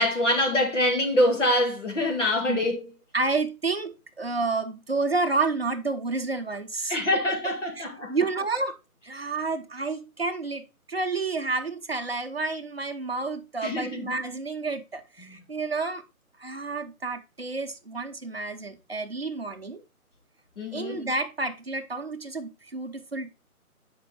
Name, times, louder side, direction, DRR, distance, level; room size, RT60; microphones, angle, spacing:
voice 1, 0.0-2.9 6.9-8.1 13.6-14.1 20.6-21.0, left 1 dB, 55° left, 2.0 m, -25 dB
voice 2, 3.1-7.2 7.8-8.8 9.0-16.0 16.4-19.8 20.7-23.3, right 3 dB, 45° right, 0.7 m, -30 dB
8.8 x 5.1 x 3.3 m
hypercardioid pair, 180°, 45 cm